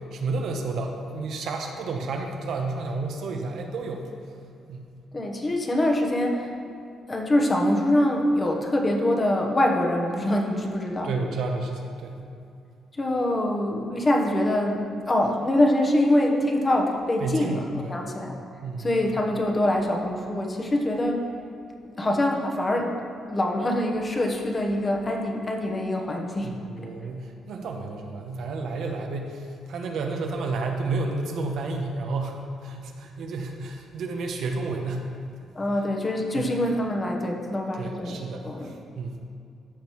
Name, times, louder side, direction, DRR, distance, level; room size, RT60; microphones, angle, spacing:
voice 1, 0.1-4.1 4.7-4.9 11.0-12.2 17.2-18.0 18.6-18.9 26.4-35.1 36.3-36.5 37.8-39.2, right 3 dB, 70° right, 2 dB, 0.9 m, -31 dB
voice 2, 5.1-6.6 7.1-11.1 13.0-18.4 18.8-21.3 22.0-22.9 23.3-26.9 35.5-38.7, left 1 dB, 25° left, 1 dB, 1.1 m, -24 dB
13.0 x 5.3 x 3.1 m, 2.4 s
cardioid pair, 90°, 0 cm